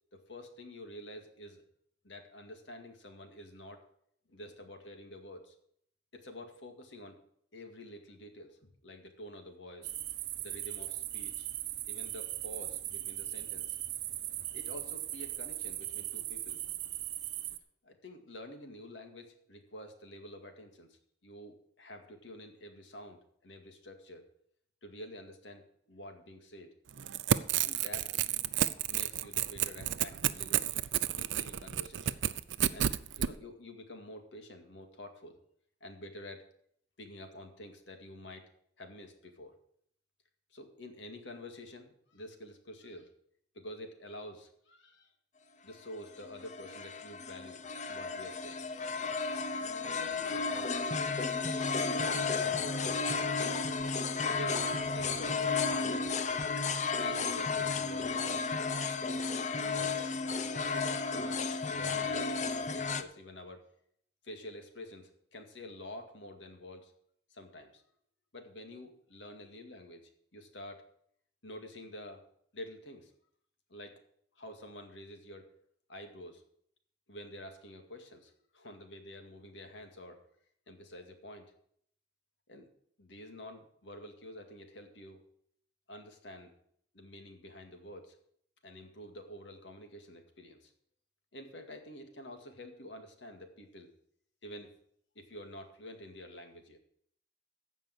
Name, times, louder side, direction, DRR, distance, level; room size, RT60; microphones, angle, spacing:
voice 1, 0.1-1.6 2.0-3.8 4.3-5.5 6.1-7.2 7.5-9.9 10.4-11.5 11.9-13.8 14.5-16.6 17.8-24.3 24.8-26.7 27.6-28.2 28.9-30.8 31.1-32.2 32.7-35.4 35.8-36.4 37.0-38.5 38.8-39.6 40.5-43.1 43.5-45.1 45.6-47.6 47.9-48.6 49.8-51.0 51.8-53.7 54.3-54.6 54.9-56.1 57.0-58.5 59.6-63.6 64.2-66.9 67.3-67.8 68.3-70.8 71.4-72.2 72.5-73.1 73.7-73.9 74.4-75.5 75.9-76.4 77.1-80.2 80.7-81.5 82.5-82.7 83.0-85.2 85.9-86.5 86.9-88.2 88.6-90.7 91.3-93.9 94.4-94.7 95.2-96.8, left 1 dB, 80° left, 5 dB, 2.1 m, -48 dB
sound 1, 9.8-17.6, right 14 dB, 60° right, 0.8 m, -39 dB
Crackle / Tearing, 26.9-33.3, right 10 dB, 85° right, 0.5 m, -31 dB
sound 2, 46.0-63.0, left 4 dB, 40° left, 0.6 m, -33 dB
15.0 x 5.4 x 7.8 m, 0.68 s
head